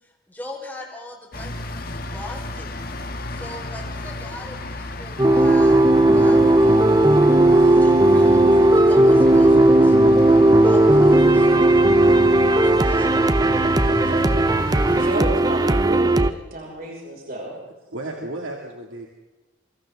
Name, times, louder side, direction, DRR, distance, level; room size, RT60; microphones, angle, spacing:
voice 1, 0.3-2.7 3.3-5.8 6.1-10.0 10.6-11.7 12.5-13.1 14.2-14.4, left 2 dB, 10° left, -2 dB, 4.0 m, -39 dB
sound 1, 1.3-15.1, left 1 dB, 50° left, 1.5 m, -33 dB
sound 2, 5.2-16.3, right 1 dB, 20° right, 0.6 m, -15 dB
voice 2, 13.7-14.5 17.9-19.1, right 2 dB, 80° right, 0 dB, 2.5 m, -34 dB
voice 3, 15.0-17.5, right 1 dB, 45° right, -2 dB, 5.8 m, -31 dB
27.0 x 25.5 x 3.8 m, 1.1 s
head